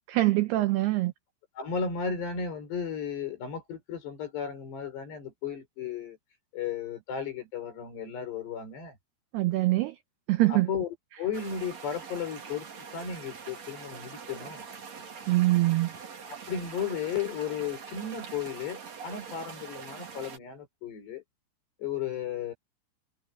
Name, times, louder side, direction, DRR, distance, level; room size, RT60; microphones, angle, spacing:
voice 1, 0.1-1.1 9.3-10.0 10.3-10.7 15.3-15.9, right 18 dB, 85° right, 2.3 m, -24 dB
voice 2, 1.6-6.2 6.5-9.0 10.5-10.9 11.2-12.7 12.9-14.7 16.5-21.2 21.8-22.5, left 7 dB, 60° left, 7.3 m, -34 dB
sound 1, 11.3-20.4, right 6 dB, 40° right, 3.4 m, -44 dB
omnidirectional pair, 5.7 m